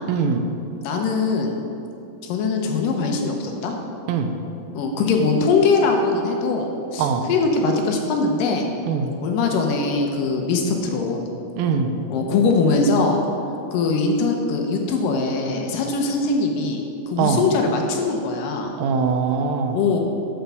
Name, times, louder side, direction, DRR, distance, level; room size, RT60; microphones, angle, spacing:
voice 1, 0.1-0.4 4.1-4.3 7.0-7.2 8.9-9.1 11.6-11.9 17.2-17.4 18.8-19.8, right 6 dB, 85° right, 5 dB, 2.4 m, -22 dB
voice 2, 0.8-1.6 2.2-3.7 4.8-8.7 9.2-11.2 12.1-13.2 13.7-18.7 19.7-20.0, left 4 dB, 75° left, 2 dB, 2.3 m, -21 dB
9.2 x 4.6 x 6.8 m, 2.7 s
omnidirectional pair, 4.2 m